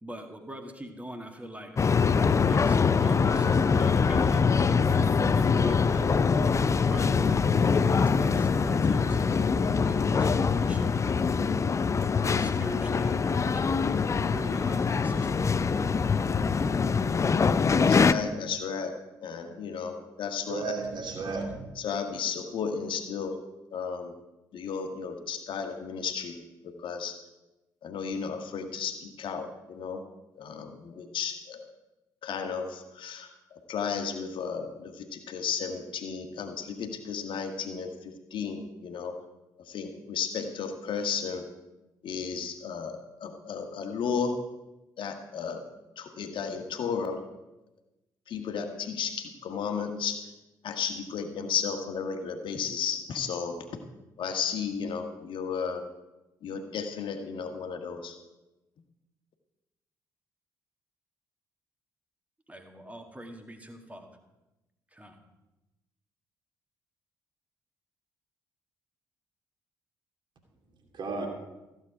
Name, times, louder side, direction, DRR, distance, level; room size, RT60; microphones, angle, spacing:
voice 1, 0.0-6.1 6.9-9.4 9.8-11.2 12.4-13.8 14.2-15.3 62.5-64.1 64.9-65.2, right 1 dB, 15° right, 4 dB, 2.0 m, -43 dB
sound 1, 1.8-18.1, left 5 dB, 30° left, 0.6 m, -24 dB
voice 2, 17.8-20.7 21.7-23.4 23.7-24.1 24.5-26.4 26.6-27.1 27.8-30.0 30.4-31.7 32.2-39.2 39.6-41.5 42.0-44.4 45.0-45.7 45.9-47.2 48.3-50.3 50.6-53.8 54.2-55.8 56.4-58.2, left 6 dB, 50° left, 5 dB, 1.6 m, -34 dB
voice 3, 20.5-21.7 70.9-71.3, right 4 dB, 45° right, 2 dB, 2.6 m, -33 dB
15.0 x 8.1 x 5.0 m, 1.0 s
figure-of-eight pair, 45°, 11 cm